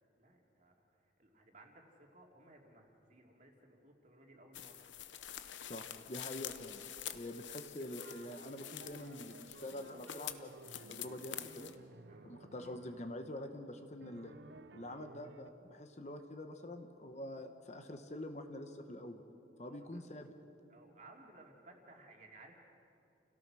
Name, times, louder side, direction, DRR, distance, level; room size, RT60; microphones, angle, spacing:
voice 1, 0.2-4.9 12.1-12.3 19.7-20.0 20.7-22.6, right 2 dB, 40° right, 0 dB, 2.8 m, -60 dB
sound 1, 4.5-11.7, left 11 dB, 75° left, 0.8 m, -47 dB
voice 2, 5.7-6.8 7.1-11.7 12.2-14.3 14.7-19.2 19.6-20.3, left 1 dB, 35° left, 6 dB, 1.1 m, -46 dB
sound 2, 8.0-13.2 14.0-15.5, right 3 dB, 65° right, 0.7 m, -56 dB
29.5 x 17.5 x 6.2 m, 2.7 s
head